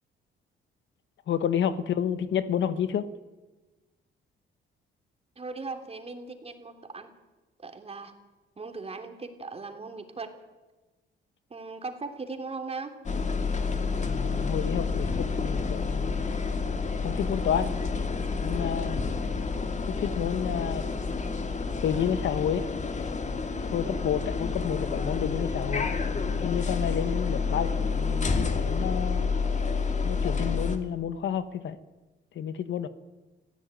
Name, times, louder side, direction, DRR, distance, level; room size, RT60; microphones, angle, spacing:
voice 1, 1.3-3.1 14.0-16.3 17.0-17.7 18.4-19.0 19.9-20.8 21.8-22.7 23.7-25.9 26.4-29.3 30.0-31.8 32.3-32.9, left 8 dB, 70° left, 13 dB, 1.3 m, -30 dB
voice 2, 5.4-7.1 7.6-8.1 8.6-10.3 11.5-12.9 23.8-24.1, right 3 dB, 30° right, 6 dB, 3.2 m, -38 dB
sound 1, 13.0-30.8, left 4 dB, 35° left, 2.5 m, -29 dB
26.0 x 16.0 x 9.1 m, 1.2 s
cardioid pair, 90°, 20 cm